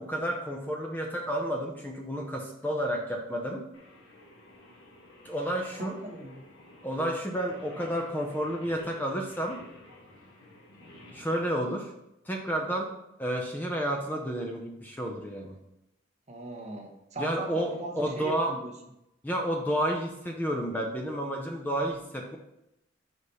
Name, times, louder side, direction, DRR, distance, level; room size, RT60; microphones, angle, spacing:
voice 1, 0.0-3.6 5.2-6.0 6.8-9.6 11.1-11.9 12.3-12.9 13.2-15.6 17.2-18.5 19.2-22.4, equal, 10° left, 1 dB, 0.6 m, -31 dB
Singing, 3.7-11.5, left 1 dB, 85° left, 1.5 m, -52 dB
voice 2, 5.8-6.4 16.3-18.7, right 2 dB, 35° right, 1 dB, 0.9 m, -39 dB
4.9 x 4.1 x 5.4 m, 0.86 s
head